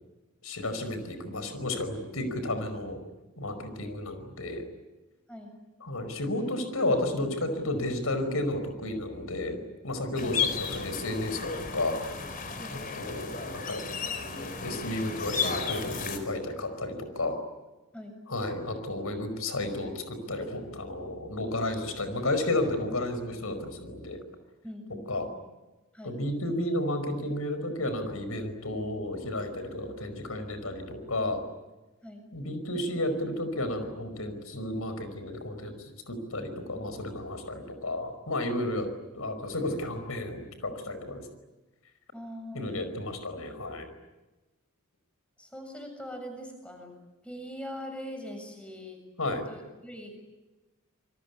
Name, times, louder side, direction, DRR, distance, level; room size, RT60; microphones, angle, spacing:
voice 1, 0.4-3.0 3.4-4.6 5.8-9.6 9.8-12.0 12.7-13.8 14.6-17.4 18.3-24.2 25.1-25.3 26.0-31.4 32.3-38.9 39.1-41.2 42.5-43.9 49.2-49.4, left 1 dB, 80° left, 9 dB, 5.1 m, -32 dB
sound 1, 10.2-16.2, left 5 dB, 40° left, 4.3 m, -34 dB
voice 2, 24.6-25.4 25.9-26.2 32.0-32.2 42.1-42.8 45.4-46.9 47.2-49.0 49.5-50.2, equal, 5° left, 4 dB, 7.1 m, -42 dB
28.5 x 23.0 x 8.4 m, 1.1 s
head